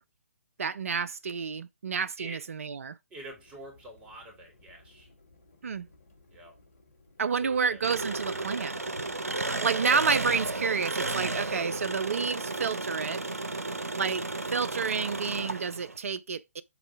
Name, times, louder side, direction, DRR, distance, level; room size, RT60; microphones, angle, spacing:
voice 1, 0.6-2.9 5.6-5.9 7.2-8.7 9.4-13.2 14.0-14.2 14.5-16.6, right 5 dB, 70° right, 0.5 m, -30 dB
sound 1, 3.1-9.5, left 2 dB, 75° left, 4.3 m, -60 dB
voice 2, 3.1-5.1 6.3-6.6 7.3-7.8, right 2 dB, 15° right, 3.2 m, -46 dB
Engine, 7.8-16.0, right 2 dB, 90° right, 0.9 m, -33 dB
6.9 x 3.9 x 4.7 m
figure-of-eight pair, 135°, 8 cm